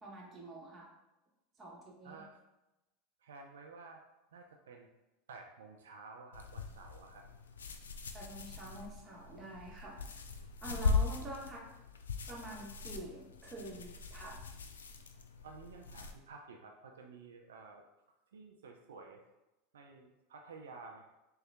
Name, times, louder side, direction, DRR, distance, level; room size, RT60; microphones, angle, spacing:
voice 1, 0.0-0.9 1.6-2.2 8.1-10.2 10.6-11.6 12.3-14.4, right 1 dB, 30° right, -2 dB, 1.1 m, -47 dB
voice 2, 2.0-2.4 3.2-4.0 4.3-4.9 5.3-7.2 8.5-8.8 15.4-17.8 18.3-19.2 19.7-21.1, right 4 dB, 85° right, 2 dB, 0.4 m, -52 dB
sound 1, 6.3-16.1, left 4 dB, 90° left, 0.3 m, -39 dB
3.8 x 2.3 x 3.3 m, 0.98 s
hypercardioid pair, 90°, 0 cm